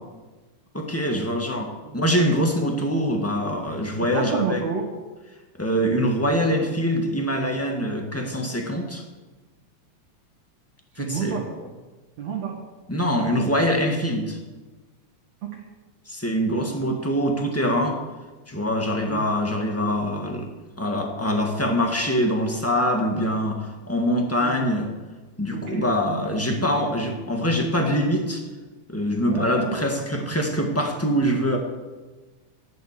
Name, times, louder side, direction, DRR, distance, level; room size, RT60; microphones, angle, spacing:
voice 1, 0.7-1.7 1.9-4.6 5.6-9.0 11.0-11.4 12.9-14.4 16.0-18.0 18.5-20.5 20.8-24.9 25.4-28.4 28.9-31.6, equal, 10° left, 1 dB, 0.8 m, -24 dB
voice 2, 4.1-4.8 11.0-11.7 12.2-12.5 15.4-15.6 16.5-16.6 18.9-19.2 24.4-24.7 25.5-25.9 26.5-27.0 29.3-29.8, right 6 dB, 65° right, -3 dB, 3.1 m, -31 dB
13.5 x 11.0 x 6.7 m, 1.2 s
omnidirectional pair, 3.5 m